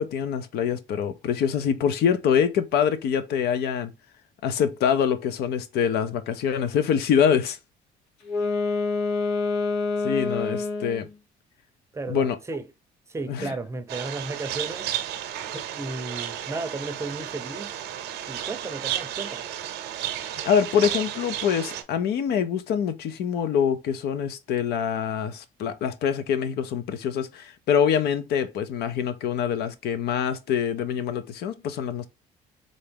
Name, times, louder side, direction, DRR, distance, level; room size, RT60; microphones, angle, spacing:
voice 1, 0.0-3.9 4.4-7.6 10.0-11.1 12.1-12.4 13.3-13.5 20.3-32.1, left 8 dB, 70° left, 0.6 m, -25 dB
Wind instrument woodwind instrument, 8.2-11.1, left 3 dB, 90° left, 1.0 m, -27 dB
voice 2, 11.9-12.7 13.1-14.9 15.4-17.7 18.3-19.4, right 3 dB, 15° right, 0.6 m, -34 dB
sound 1, 13.9-21.8, right 11 dB, 85° right, 0.7 m, -33 dB
4.0 x 2.5 x 3.4 m
cardioid pair, 110°, 17 cm